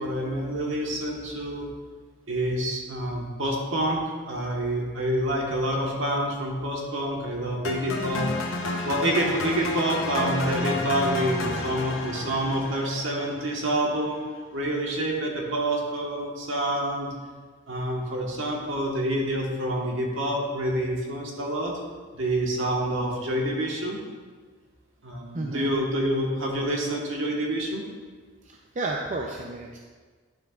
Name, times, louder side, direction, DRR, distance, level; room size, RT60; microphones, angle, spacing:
voice 1, 0.0-1.7 2.3-4.0 4.3-8.3 8.8-14.2 14.5-17.1 17.7-21.7 22.1-24.0 25.0-27.8, right 1 dB, 65° right, -1 dB, 1.4 m, -27 dB
sound 1, 7.6-13.8, left 2 dB, 80° left, 0.9 m, -31 dB
voice 2, 25.3-25.7 28.4-29.8, right 2 dB, 40° right, 0 dB, 0.5 m, -32 dB
10.5 x 6.6 x 2.4 m, 1.5 s
head